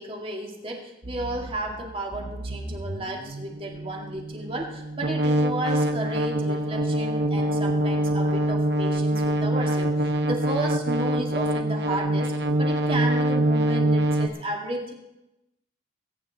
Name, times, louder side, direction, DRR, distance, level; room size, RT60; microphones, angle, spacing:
voice 1, 0.0-12.3 12.6-14.9, right 1 dB, 30° right, 0 dB, 2.1 m, -33 dB
sound 1, 1.0-14.3, right 1 dB, 60° right, 1.0 m, -25 dB
21.0 x 9.2 x 4.1 m, 0.92 s
head